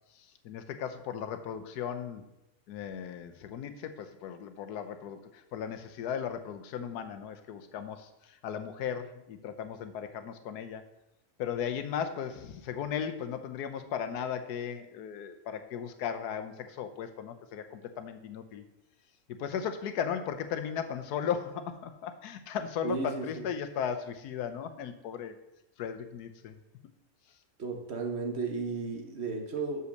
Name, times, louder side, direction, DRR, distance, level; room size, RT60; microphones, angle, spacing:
voice 1, 0.1-2.2 2.7-10.8 11.4-18.6 19.3-25.4 25.8-26.6, left 8 dB, 85° left, 9 dB, 1.3 m, -36 dB
voice 2, 22.8-23.4 27.6-29.8, right 4 dB, 50° right, 4 dB, 1.2 m, -34 dB
6.3 x 5.6 x 6.4 m, 0.89 s
omnidirectional pair, 1.6 m